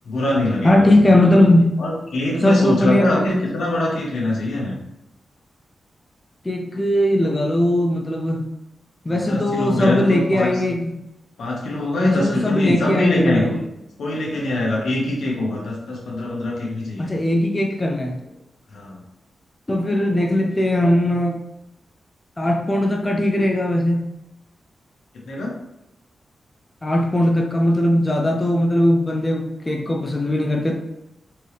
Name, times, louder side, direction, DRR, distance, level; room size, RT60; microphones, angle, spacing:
voice 1, 0.0-0.9 1.8-4.8 9.3-10.8 11.4-13.5 14.0-17.2 18.7-19.0 25.2-25.5, left 1 dB, 80° left, -3 dB, 1.3 m, -23 dB
voice 2, 0.6-1.8 2.4-3.4 6.4-8.5 9.1-10.9 12.0-13.6 17.0-18.2 19.7-21.5 22.4-24.1 26.8-30.8, left 1 dB, 15° left, 2 dB, 0.4 m, -19 dB
4.4 x 3.1 x 3.3 m, 0.87 s
wide cardioid pair, 165°, 0 cm